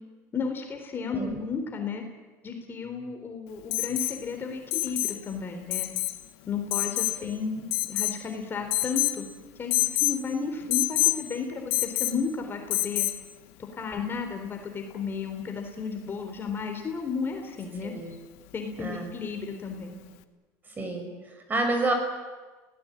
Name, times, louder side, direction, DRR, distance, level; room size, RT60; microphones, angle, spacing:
voice 1, 0.3-2.0 2.4-5.9 6.5-9.2 9.6-13.1 13.8-17.9 18.5-19.9, left 5 dB, 30° left, 4 dB, 3.9 m, -33 dB
Alarm, 3.7-4.2 4.7-5.2 5.7-6.2 6.7-7.2 7.7-8.2 8.7-9.2 9.7-10.2 10.7-11.2 11.7-12.2 12.7-13.2 14.9-15.0, left 19 dB, 80° left, 1.4 m, -26 dB
voice 2, 17.8-18.1 18.8-19.1 20.8-21.9, right 2 dB, 25° right, 5 dB, 6.2 m, -29 dB
29.0 x 18.0 x 9.1 m, 1.3 s
supercardioid pair, 115°, 7 cm